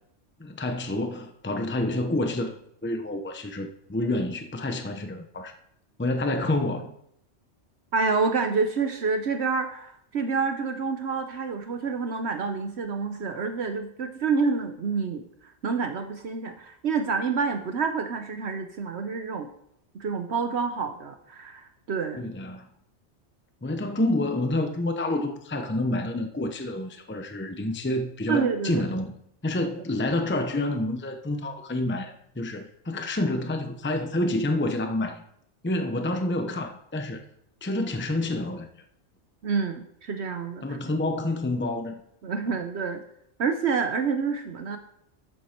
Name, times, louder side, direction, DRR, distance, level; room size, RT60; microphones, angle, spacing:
voice 1, 0.4-5.5 6.0-6.9 22.2-22.7 23.6-29.2 29.4-35.2 35.6-37.2 37.6-38.7 40.6-42.0 42.5-42.6, left 1 dB, 10° left, 5 dB, 0.8 m, -28 dB
voice 2, 7.9-15.3 15.6-19.5 19.9-22.3 28.3-28.9 39.4-40.8 42.2-43.0 43.4-44.8, right 5 dB, 65° right, 6 dB, 1.1 m, -28 dB
12.5 x 8.4 x 4.5 m, 0.73 s
omnidirectional pair, 1.2 m